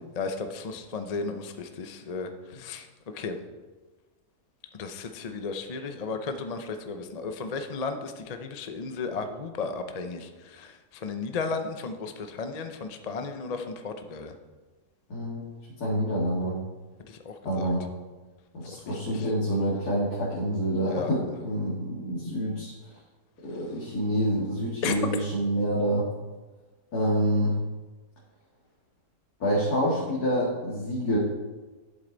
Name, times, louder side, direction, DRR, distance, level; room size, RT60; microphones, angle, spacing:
voice 1, 0.2-2.9 3.1-3.4 4.7-14.3 17.1-17.7 18.9-19.3 20.9-21.1 24.8-25.0, left 4 dB, 45° left, 7 dB, 0.5 m, -34 dB
voice 2, 15.1-15.4 15.8-16.6 17.4-17.9 18.5-22.7 23.4-26.1 26.9-27.5 29.4-31.2, equal, 65° left, -6 dB, 2.5 m, -27 dB
11.0 x 7.9 x 4.0 m, 1.2 s
omnidirectional pair, 1.8 m